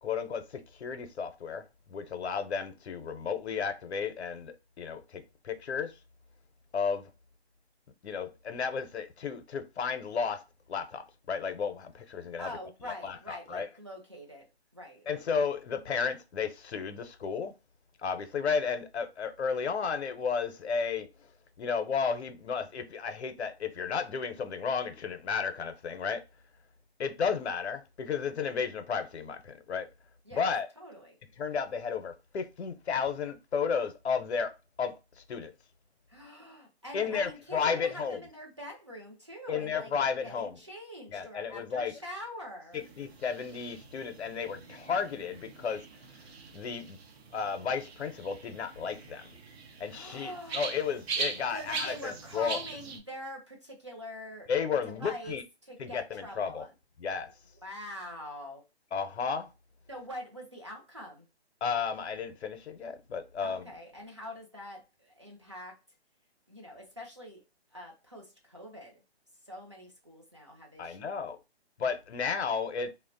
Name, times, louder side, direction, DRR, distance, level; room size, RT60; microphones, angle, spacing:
voice 1, 0.0-1.6 1.9-5.9 6.7-7.1 8.0-10.4 10.7-12.5 13.0-13.7 15.1-17.5 18.0-21.1 21.6-26.2 27.0-29.9 30.3-30.7 31.4-34.9 35.3-35.5 36.9-38.2 39.5-40.6 41.1-41.9 42.7-45.8 46.5-47.0 47.3-49.3 49.8-52.6 54.5-55.4 55.8-56.7 57.0-57.3 58.9-59.5 61.6-63.7 70.8-71.4 71.8-72.9, left 6 dB, 80° left, 0.6 m, -33 dB
voice 2, 12.4-14.5 14.7-15.2 30.2-30.4 30.8-31.2 36.1-39.9 40.2-42.8 49.9-50.6 51.5-54.5 54.8-56.7 57.6-58.6 59.9-61.3 63.4-65.8 66.5-67.4 67.7-69.0 69.4-71.2, equal, 30° right, 0.4 m, -44 dB
sound 1, 42.7-53.0, right 5 dB, 70° right, 0.7 m, -41 dB
2.5 x 2.0 x 2.4 m
hypercardioid pair, 160°, 33 cm